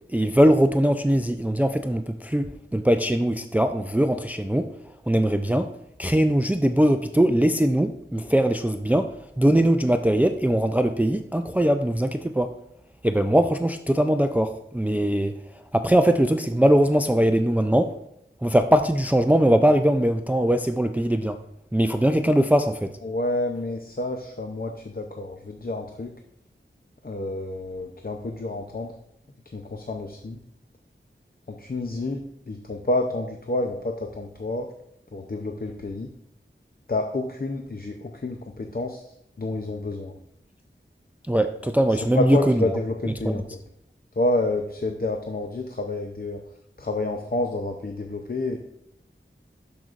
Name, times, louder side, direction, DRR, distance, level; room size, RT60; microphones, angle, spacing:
voice 1, 0.1-4.7 5.0-12.5 13.0-17.9 18.4-21.4 21.7-22.9 41.3-42.6 43.2-43.4, right 1 dB, 10° right, 8 dB, 0.4 m, -21 dB
voice 2, 23.0-26.1 27.0-29.0 29.5-30.4 31.5-34.7 35.1-36.1 36.9-40.1 41.9-43.4 44.2-46.4 46.8-48.6, left 2 dB, 45° left, 3 dB, 0.6 m, -29 dB
12.0 x 5.2 x 2.5 m, 0.77 s
wide cardioid pair, 45°, 21 cm